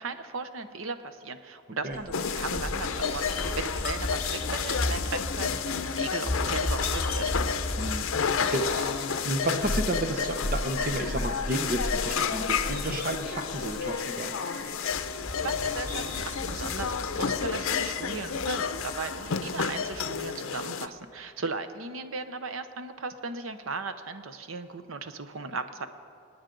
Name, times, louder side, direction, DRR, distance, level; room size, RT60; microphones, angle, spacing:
voice 1, 0.0-7.2 15.4-25.9, right 4 dB, 80° right, 10 dB, 0.8 m, -36 dB
Bird vocalization bird call bird song, 1.9-20.0, left 1 dB, 10° left, 1.7 m, -36 dB
sound 1, 2.1-20.9, left 6 dB, 85° left, 0.6 m, -31 dB
voice 2, 8.5-8.9 9.2-14.3, right 1 dB, 45° right, 6 dB, 0.8 m, -32 dB
25.0 x 9.6 x 3.9 m, 2.5 s
head